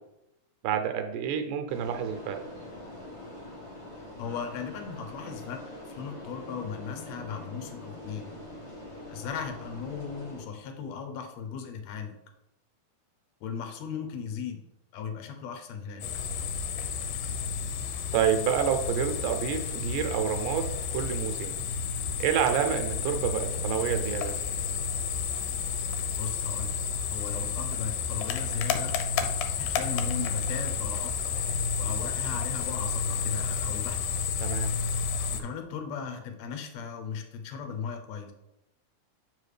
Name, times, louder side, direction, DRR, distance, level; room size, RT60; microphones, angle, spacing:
voice 1, 0.6-2.4 18.1-21.6 22.2-24.3 34.4-34.7, right 8 dB, 85° right, 6 dB, 2.2 m, -28 dB
sound 1, 1.7-10.4, left 1 dB, 55° left, 1.0 m, -44 dB
voice 2, 4.2-8.3 9.1-12.1 13.4-14.6 14.9-16.1 26.2-26.8 27.1-28.9 29.6-31.3 31.8-34.0 35.3-38.3, left 6 dB, 70° left, 5 dB, 1.8 m, -37 dB
sound 2, 16.0-35.4, left 5 dB, 90° left, 2.2 m, -31 dB
7.5 x 4.8 x 3.3 m, 0.87 s
omnidirectional pair, 3.6 m